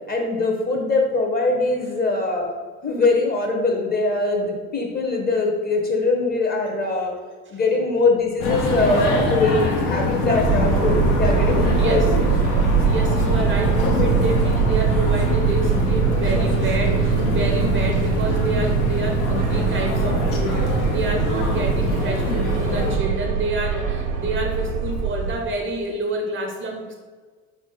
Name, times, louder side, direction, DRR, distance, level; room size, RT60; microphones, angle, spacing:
voice 1, 0.1-2.5 2.8-7.1 7.5-12.2, left 2 dB, 25° left, 1 dB, 0.8 m, -22 dB
sound 1, 8.4-23.0, left 2 dB, 70° left, 0.7 m, -24 dB
sound 2, 10.4-25.4, right 7 dB, 70° right, 0.7 m, -22 dB
voice 2, 11.8-12.4 12.8-26.9, right 2 dB, 30° right, 2 dB, 0.6 m, -28 dB
3.9 x 2.5 x 3.7 m, 1.4 s
figure-of-eight pair, 60°, 38 cm